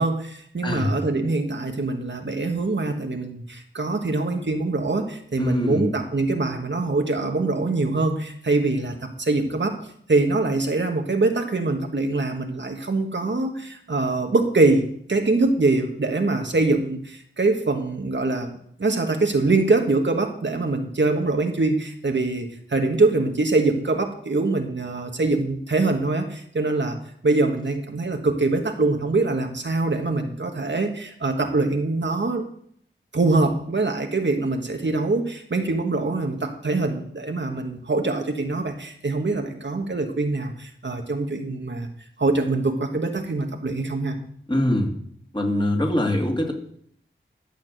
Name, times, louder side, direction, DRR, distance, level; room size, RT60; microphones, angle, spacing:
voice 1, 0.0-9.7 10.1-27.0 27.2-32.4 33.1-41.9 42.2-44.1, right 3 dB, 60° right, 4 dB, 1.4 m, -23 dB
voice 2, 0.6-0.9 5.4-5.9 44.5-44.9 45.3-46.5, left 1 dB, 20° left, 1 dB, 2.4 m, -23 dB
12.0 x 5.9 x 7.8 m, 0.66 s
wide cardioid pair, 65°, 21 cm